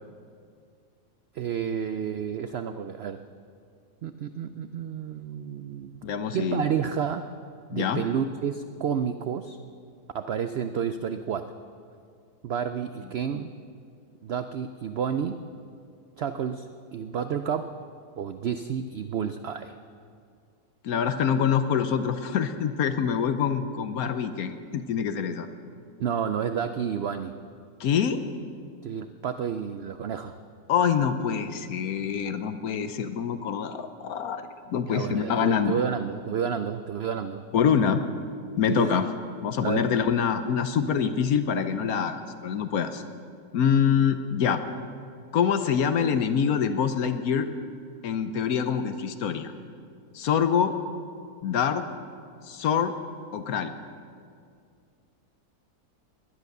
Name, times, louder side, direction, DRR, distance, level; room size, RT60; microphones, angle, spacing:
voice 1, 1.3-3.2 4.0-5.9 6.3-7.3 7.7-9.6 10.1-11.5 12.4-13.5 14.2-15.4 16.2-17.7 18.2-19.7 26.0-27.3 28.8-30.4 34.8-37.4 38.7-39.0 39.6-39.9, right 7 dB, 75° right, 10 dB, 0.5 m, -30 dB
voice 2, 6.0-6.6 7.7-8.0 20.8-25.5 27.8-28.2 30.7-35.7 37.5-38.0 38.6-39.1 39.4-43.0 43.5-44.6 45.3-47.5 48.0-49.5 50.1-50.7 51.4-51.8 52.5-52.9 53.3-53.7, left 7 dB, 70° left, 9 dB, 1.2 m, -25 dB
19.0 x 10.5 x 6.6 m, 2.3 s
omnidirectional pair, 1.7 m